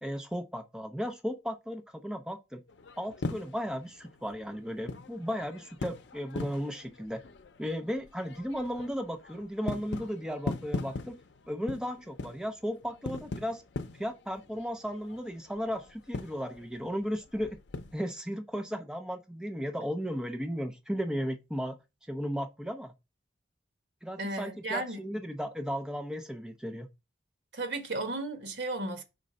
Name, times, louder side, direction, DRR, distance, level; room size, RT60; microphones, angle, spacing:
voice 1, 0.0-2.6 3.0-7.2 7.6-11.2 11.5-13.6 14.0-17.6 17.9-21.8 22.1-22.9 24.0-26.9, equal, 5° right, 0.6 m, -35 dB
sound 1, 2.7-18.0, left 3 dB, 80° left, 0.6 m, -41 dB
voice 2, 24.2-25.0 27.5-29.0, right 2 dB, 75° right, 1.6 m, -34 dB
5.1 x 3.8 x 5.4 m
head